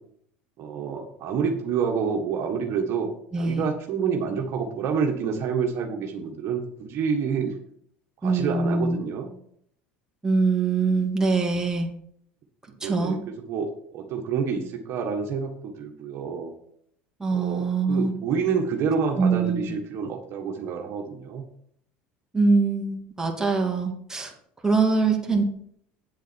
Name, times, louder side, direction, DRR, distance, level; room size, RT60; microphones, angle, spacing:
voice 1, 0.6-7.6 8.2-9.3 12.8-13.2 13.5-16.5 17.3-21.4, right 6 dB, 55° right, 2 dB, 1.7 m, -28 dB
voice 2, 3.3-3.7 8.2-9.0 10.2-11.9 12.8-13.2 17.2-18.1 19.2-19.7 22.3-24.3 24.6-25.4, right 4 dB, 10° right, 1 dB, 2.6 m, -23 dB
8.6 x 8.0 x 4.6 m, 0.67 s
hypercardioid pair, 80°, 5 cm